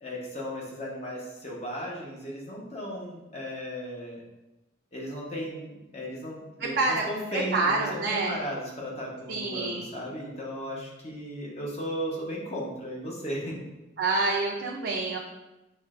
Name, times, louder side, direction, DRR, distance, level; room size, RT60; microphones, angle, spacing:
voice 1, 0.0-4.2 4.9-5.6 5.9-13.6, equal, 35° left, -4 dB, 0.9 m, -35 dB
voice 2, 6.6-7.0 7.3-8.4 9.3-9.8 14.0-15.2, right 3 dB, 70° right, -3 dB, 0.5 m, -27 dB
5.8 x 3.2 x 2.4 m, 1.0 s
head